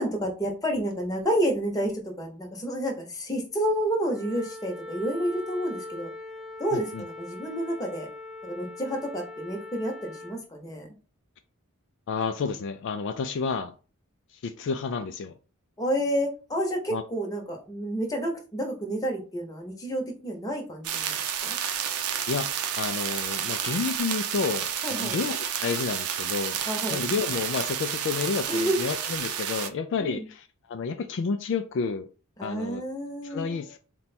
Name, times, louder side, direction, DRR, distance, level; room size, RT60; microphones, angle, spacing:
voice 1, 0.0-6.1 6.6-8.1 8.4-10.9 15.8-21.5 24.8-25.2 26.7-27.0 28.5-28.9 30.0-30.3 32.4-33.6, equal, 15° left, 0.9 m, -30 dB
Wind instrument woodwind instrument, 4.1-10.4, left 2 dB, 5° right, 0.5 m, -41 dB
voice 2, 6.7-7.0 12.1-13.7 14.3-15.3 16.9-17.0 22.3-26.6 26.9-32.1 32.4-32.8 33.2-33.8, left 5 dB, 55° left, 0.3 m, -30 dB
sound 1, 20.8-29.7, right 8 dB, 80° right, 0.6 m, -30 dB
4.2 x 2.2 x 4.1 m
head